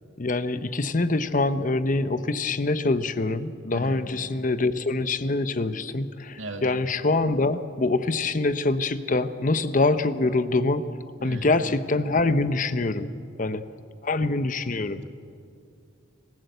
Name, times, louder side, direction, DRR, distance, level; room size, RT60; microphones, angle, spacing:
voice 1, 0.2-10.9 11.2-13.1 13.4-13.6 14.0-15.0, left 2 dB, 40° left, 12 dB, 0.8 m, -25 dB
voice 2, 3.7-4.0 6.4-6.6 11.2-11.5, right 2 dB, 70° right, 4 dB, 2.2 m, -37 dB
25.5 x 15.5 x 8.0 m, 2.5 s
head